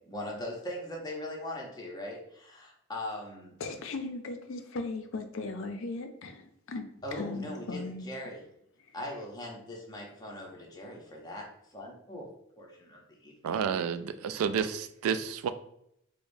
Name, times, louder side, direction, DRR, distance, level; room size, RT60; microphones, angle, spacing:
voice 1, 0.1-3.5 7.0-8.4 8.9-12.3 12.6-13.6, left 1 dB, 20° left, -2 dB, 0.7 m, -40 dB
voice 2, 3.6-6.9 7.1-8.1, left 3 dB, 65° left, 6 dB, 0.5 m, -37 dB
voice 3, 13.4-15.5, right 7 dB, 90° right, 14 dB, 0.3 m, -30 dB
4.7 x 2.1 x 2.6 m, 0.76 s
head